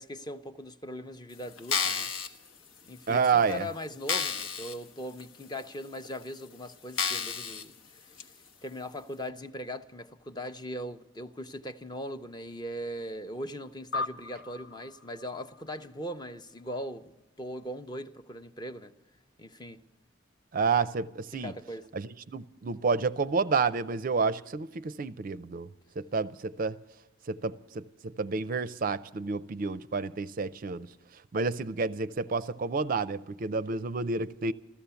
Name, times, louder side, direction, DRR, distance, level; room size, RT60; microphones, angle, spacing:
voice 1, 0.0-2.1 2.8-7.7 8.0-8.3 8.6-18.9 19.4-19.8 21.3-21.9, equal, 20° left, 0.6 m, -40 dB
sound 1, 1.6-2.3 3.0-3.1 3.5-3.6 4.1-4.8 5.2-5.3 6.0-6.1 7.0-7.6 8.2-8.3, left 6 dB, 90° left, 1.2 m, -30 dB
voice 2, 3.1-3.7 20.5-21.5 22.3-25.7 26.0-26.8 27.3-27.8 28.2-30.9 31.3-34.5, right 4 dB, 45° right, 0.4 m, -29 dB
sound 2, 13.9-16.7, left 3 dB, 70° left, 0.5 m, -39 dB
14.5 x 14.5 x 6.9 m
head